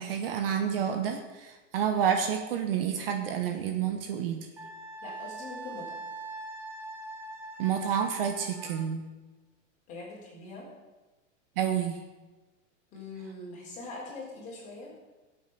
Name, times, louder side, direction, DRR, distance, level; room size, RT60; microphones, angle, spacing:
voice 1, 0.0-4.5 7.6-9.1 11.6-12.0, right 8 dB, 45° right, 6 dB, 1.2 m, -29 dB
Wind instrument woodwind instrument, 4.6-8.9, right 2 dB, 5° right, 0.7 m, -42 dB
voice 2, 5.0-6.0 9.9-10.7 12.9-14.9, left 3 dB, 20° left, -4 dB, 4.2 m, -42 dB
17.5 x 8.1 x 6.0 m, 1.2 s
supercardioid pair, 180°, 39 cm